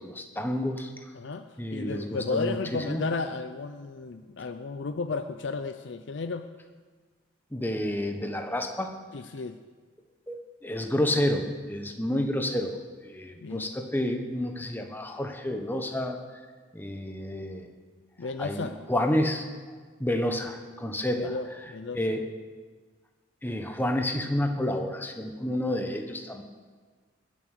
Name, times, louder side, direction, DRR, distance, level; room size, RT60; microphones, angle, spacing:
voice 1, 0.0-0.9 1.6-3.0 7.5-8.9 10.3-12.8 13.0-16.2 16.7-17.7 18.4-19.4 20.0-21.4 21.9-22.3 23.4-26.4, left 1 dB, 10° left, 4 dB, 1.0 m, -29 dB
voice 2, 1.1-6.5 9.1-9.6 13.4-13.7 18.2-18.8 21.1-22.0, left 4 dB, 60° left, 9 dB, 0.5 m, -33 dB
21.0 x 7.3 x 6.6 m, 1.5 s
head